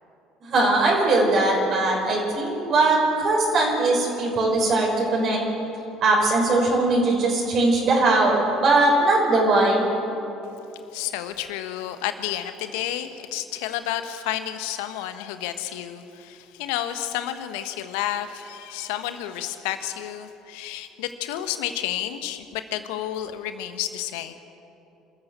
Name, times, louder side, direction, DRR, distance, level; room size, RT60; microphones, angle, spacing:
voice 1, 0.4-5.4 6.0-9.9, right 2 dB, 50° right, -2 dB, 6.0 m, -20 dB
voice 2, 10.9-24.3, left 12 dB, 70° left, 9 dB, 1.4 m, -31 dB
27.0 x 14.0 x 8.3 m, 3.0 s
hypercardioid pair, 60°, 0 cm